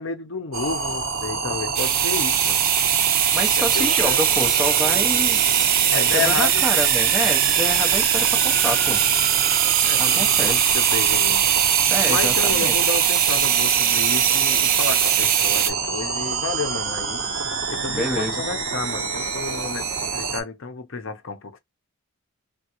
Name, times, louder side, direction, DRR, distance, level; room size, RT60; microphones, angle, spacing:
voice 1, 0.0-2.6 3.7-4.2 5.9-6.6 9.8-11.4 12.1-17.2 17.7-21.6, left 4 dB, 60° left, 0.7 m, -31 dB
sound 1, 0.5-20.4, right 5 dB, 60° right, 0.9 m, -27 dB
sound 2, 1.7-15.7, right 10 dB, 40° right, 0.4 m, -20 dB
voice 2, 3.3-5.4 5.7-5.8 6.1-9.0 10.0-10.7 11.9-12.7 17.9-18.4, left 1 dB, ahead, 0.7 m, -28 dB
3.6 x 2.2 x 2.8 m
head